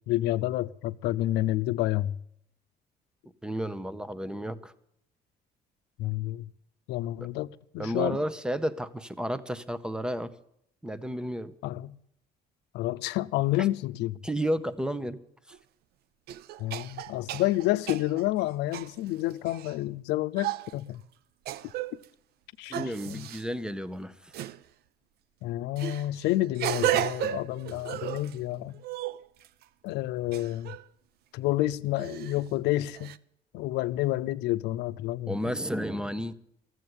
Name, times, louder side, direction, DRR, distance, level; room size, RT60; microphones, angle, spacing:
voice 1, 0.1-2.2 6.0-6.5 6.9-8.2 11.6-12.0 12.7-14.2 16.6-21.0 22.6-23.3 25.4-28.8 29.8-30.7 31.3-33.2 33.5-35.3, left 15 dB, 90° left, 0.6 m, -29 dB
voice 2, 3.4-4.7 7.8-10.3 10.8-11.5 13.6-13.7 14.2-15.2 15.5-15.6 22.7-24.3 35.3-36.3, equal, 5° right, 0.8 m, -32 dB
sound 1, 15.5-15.6 16.3-19.7 20.4-20.7 21.5-22.1 22.7-23.4 24.3-24.6 25.8-28.4 28.7-29.6 30.3-30.8 32.0-32.4 33.0-33.2, right 12 dB, 70° right, 0.6 m, -34 dB
13.5 x 7.9 x 9.6 m
cardioid pair, 110°, 17 cm